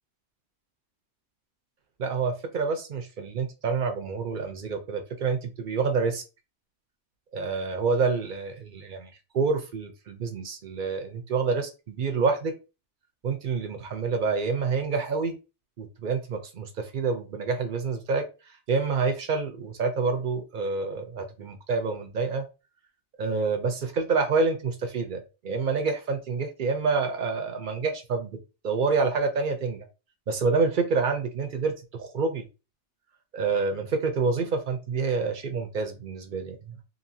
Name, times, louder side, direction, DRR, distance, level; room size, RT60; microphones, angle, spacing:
voice 1, 2.0-6.2 7.3-12.5 13.2-15.3 15.8-18.2 18.7-22.5 23.2-28.4 28.6-29.9 30.3-32.4 33.3-36.8, right 4 dB, 55° right, 6 dB, 0.6 m, -27 dB
2.9 x 2.6 x 2.6 m, 0.30 s
omnidirectional pair, 1.2 m